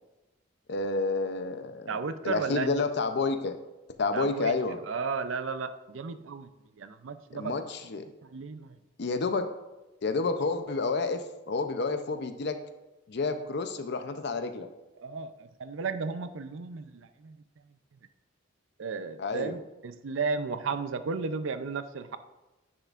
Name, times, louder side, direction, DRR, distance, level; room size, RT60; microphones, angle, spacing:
voice 1, 0.7-3.6 4.0-4.8 7.3-8.1 9.0-9.5 10.0-12.6 13.1-14.7 19.2-19.6, left 3 dB, 55° left, 8 dB, 0.6 m, -30 dB
voice 2, 1.9-2.8 4.1-4.5 4.9-6.5 6.8-7.5 8.2-8.8 15.0-17.4 18.8-22.2, right 5 dB, 75° right, 11 dB, 0.5 m, -34 dB
10.0 x 6.6 x 2.5 m, 1.1 s
head